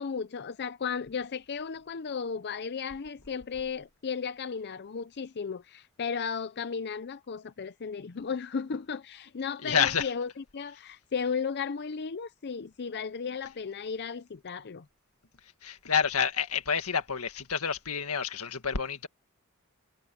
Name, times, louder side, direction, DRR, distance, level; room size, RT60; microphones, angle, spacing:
voice 1, 0.0-14.9, left 6 dB, 50° left, 0.6 m, -35 dB
voice 2, 9.6-10.1 15.6-19.1, left 7 dB, 90° left, 1.8 m, -28 dB
head